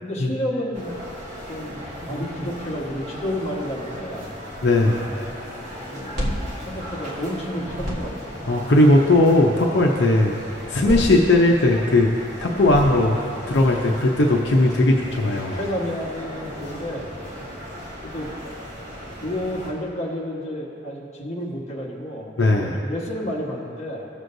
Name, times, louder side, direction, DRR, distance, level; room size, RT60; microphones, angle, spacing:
voice 1, 0.0-1.0 1.5-4.3 4.9-5.6 5.9-6.2 6.6-8.3 10.8-11.1 13.5-14.0 14.8-15.1 15.5-17.1 18.0-18.3 19.2-24.1, equal, 35° left, -5 dB, 1.3 m, -31 dB
sound 1, 0.7-19.7, equal, 40° right, 2.0 m, -37 dB
voice 2, 4.6-5.0 8.5-10.4 10.7-12.1 12.4-13.2 13.5-15.6 22.4-22.8, left 2 dB, 75° left, 0 dB, 0.7 m, -18 dB
sound 2, 5.9-7.3 7.6-8.4 10.6-11.8 12.5-13.4, equal, 60° right, 1.4 m, -30 dB
16.5 x 6.3 x 2.6 m, 2.7 s
head